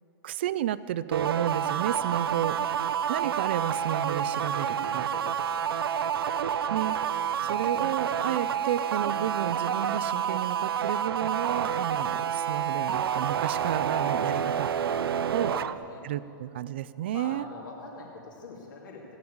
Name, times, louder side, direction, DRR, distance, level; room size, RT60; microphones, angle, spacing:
voice 1, 0.2-2.6 3.1-5.1 6.7-7.0 7.4-14.7 15.3-15.5 16.0-17.5, right 11 dB, 30° right, 15 dB, 0.3 m, -31 dB
sound 1, 1.1-15.7, right 8 dB, 75° right, 0.6 m, -29 dB
voice 2, 4.5-5.6 7.2-7.7 12.8-13.2 15.3-16.0 17.1-19.2, left 3 dB, 55° left, -2 dB, 2.7 m, -45 dB
16.5 x 9.7 x 8.6 m, 2.8 s
hypercardioid pair, 175°, 12 cm